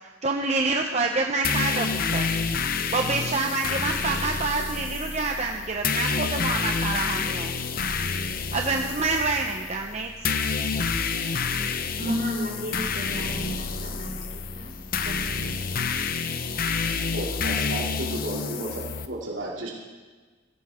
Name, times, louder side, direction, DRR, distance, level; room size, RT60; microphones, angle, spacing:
voice 1, 0.2-2.3 2.9-7.5 8.5-10.1, right 3 dB, 35° right, 2 dB, 0.8 m, -27 dB
sound 1, 1.4-19.1, left 5 dB, 50° left, 0.7 m, -28 dB
voice 2, 12.0-14.7 15.0-15.5, equal, 60° right, -4 dB, 5.6 m, -33 dB
voice 3, 17.1-19.7, right 1 dB, 90° right, -4 dB, 2.7 m, -33 dB
16.0 x 16.0 x 3.7 m, 1.4 s
head